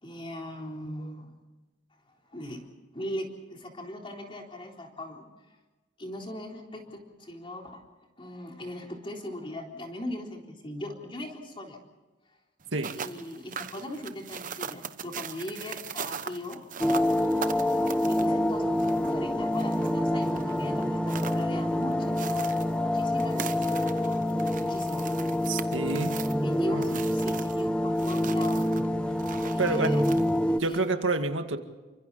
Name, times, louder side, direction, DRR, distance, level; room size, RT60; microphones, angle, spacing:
voice 1, 0.0-1.3 2.3-2.6 2.9-5.5 6.0-7.8 8.2-11.8 12.9-16.6 18.1-22.2 22.8-24.1 24.6-25.1 26.4-28.7 29.4-30.0 30.5-30.8, left 1 dB, 25° left, 1 dB, 3.9 m, -39 dB
sound 1, 12.6-30.9, right 6 dB, 45° right, 0.9 m, -41 dB
sound 2, 16.8-30.6, left 1 dB, 5° left, 0.8 m, -27 dB
voice 2, 25.5-26.2 26.7-27.0 29.6-30.0 30.6-31.6, right 3 dB, 85° right, 6 dB, 2.0 m, -28 dB
29.0 x 25.0 x 4.2 m, 1.2 s
head